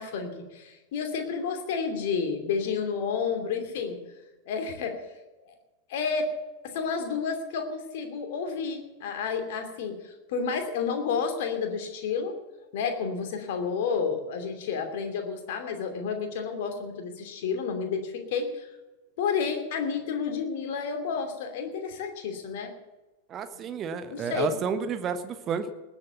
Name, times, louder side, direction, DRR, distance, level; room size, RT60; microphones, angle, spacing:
voice 1, 0.0-4.0 4.5-5.0 5.9-6.3 6.6-12.4 12.7-18.7 19.2-22.7 24.1-24.6, left 5 dB, 50° left, 6 dB, 2.8 m, -30 dB
voice 2, 23.3-25.7, right 6 dB, 30° right, 9 dB, 1.3 m, -31 dB
19.5 x 7.8 x 6.9 m, 1.1 s
figure-of-eight pair, 90°, 0 cm